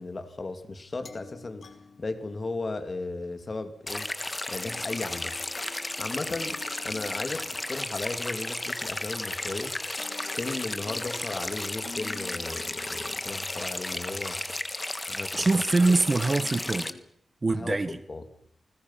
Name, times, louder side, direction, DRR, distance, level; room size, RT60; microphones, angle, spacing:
voice 1, 0.0-1.7 2.0-4.1 4.5-5.3 6.0-6.6 6.8-9.8 10.3-14.4 15.1-15.5 15.8-15.9 17.5-18.3, left 3 dB, 35° left, 2.7 m, -35 dB
sound 1, 1.0-3.3 4.6-9.4 10.0-14.1 15.8-17.0, left 4 dB, 65° left, 3.2 m, -50 dB
sound 2, 3.9-16.9, left 2 dB, 20° left, 1.5 m, -34 dB
voice 2, 15.3-16.9 17.4-18.0, right 3 dB, 35° right, 1.3 m, -24 dB
29.0 x 20.5 x 5.8 m
wide cardioid pair, 95°, 0 cm